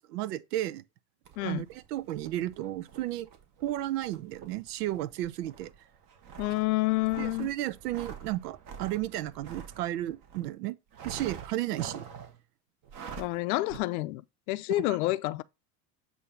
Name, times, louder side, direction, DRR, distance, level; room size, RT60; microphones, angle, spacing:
voice 1, 0.1-0.8 1.4-3.3 3.6-5.7 7.2-10.7 11.0-12.0, right 14 dB, 85° right, 0.8 m, -33 dB
sound 1, 1.2-10.5 10.9-12.4 12.8-13.4 13.7-13.8, right 7 dB, 40° right, 1.4 m, -46 dB
voice 2, 6.4-7.5 13.2-14.2 14.5-15.4, left 19 dB, 65° left, 0.6 m, -28 dB
8.3 x 2.8 x 5.6 m
supercardioid pair, 140°, 46 cm